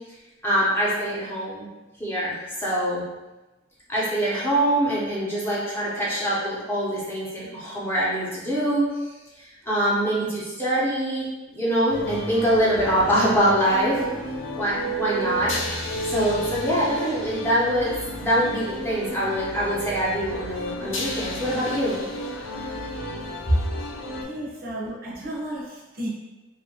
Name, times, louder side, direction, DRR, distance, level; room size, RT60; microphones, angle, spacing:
voice 1, 0.4-1.7 2.0-3.0 3.9-8.8 9.7-14.0 14.5-17.9 18.2-22.0, right 1 dB, 10° left, -8 dB, 0.8 m, -24 dB
sound 1, 11.9-24.2, equal, 85° left, 0.5 m, -32 dB
voice 2, 24.2-26.1, right 1 dB, 50° right, -4 dB, 0.6 m, -33 dB
2.6 x 2.4 x 2.8 m, 1.1 s
head